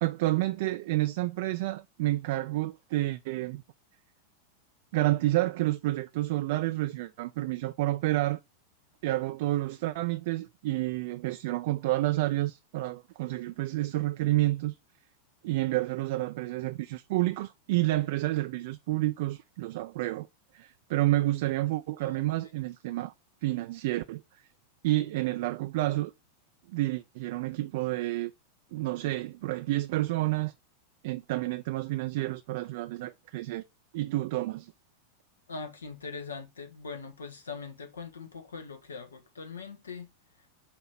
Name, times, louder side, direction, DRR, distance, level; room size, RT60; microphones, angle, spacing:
voice 1, 0.0-3.6 4.9-8.4 9.0-14.8 15.4-20.3 20.5-23.1 23.4-24.2 24.8-26.1 26.7-28.3 28.7-30.5 31.0-33.6 33.9-34.7, right 17 dB, 50° right, 0.4 m, -29 dB
voice 2, 35.5-40.1, left 4 dB, 70° left, 1.4 m, -41 dB
5.8 x 3.1 x 5.7 m
figure-of-eight pair, 90°, 0 cm